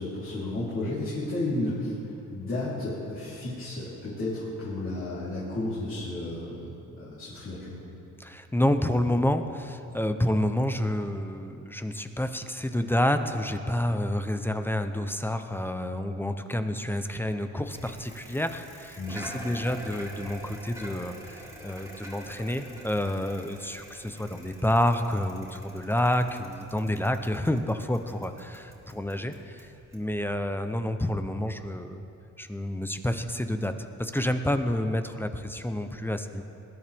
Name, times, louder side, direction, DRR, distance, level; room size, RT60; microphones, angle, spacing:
voice 1, 0.0-1.9 2.3-7.8 19.0-19.4, left 2 dB, 45° left, -10 dB, 3.6 m, -33 dB
voice 2, 8.2-32.0 32.4-36.4, left 1 dB, 5° left, 8 dB, 0.7 m, -29 dB
Bicycle, 17.7-30.8, equal, 10° right, 3.2 m, -46 dB
20.5 x 11.0 x 3.5 m, 3.0 s
cardioid pair, 90°, 30 cm